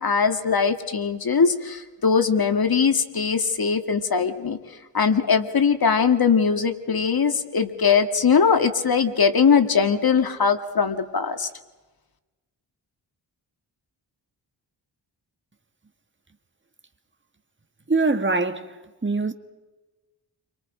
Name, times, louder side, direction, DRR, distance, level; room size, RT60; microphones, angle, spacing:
voice 1, 0.0-4.6 4.9-11.5, left 6 dB, 55° left, 2.1 m, -21 dB
voice 2, 17.9-18.7 19.0-19.3, right 3 dB, 25° right, 1.9 m, -22 dB
30.0 x 24.0 x 5.1 m
cardioid pair, 70°, 43 cm